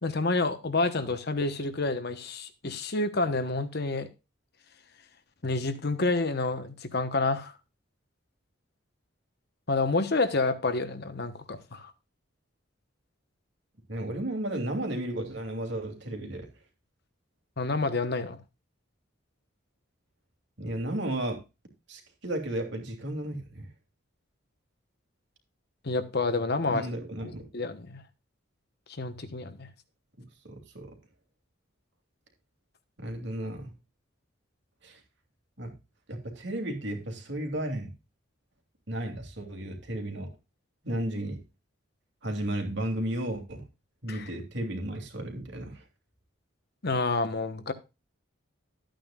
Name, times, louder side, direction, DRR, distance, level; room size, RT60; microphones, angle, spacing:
voice 1, 0.0-4.1 5.4-7.5 9.7-11.9 17.6-18.4 25.8-26.9 27.2-28.0 29.0-29.7 44.1-44.3 46.8-47.7, left 3 dB, 55° left, 1.1 m, -29 dB
voice 2, 13.9-16.5 20.6-21.4 21.9-23.7 26.7-27.5 30.2-30.9 33.0-33.7 34.8-35.0 35.6-35.7 36.1-37.9 38.9-40.3 40.8-41.4 42.2-43.7 44.0-45.8, right 1 dB, 60° right, 2.8 m, -34 dB
13.0 x 9.1 x 2.4 m
head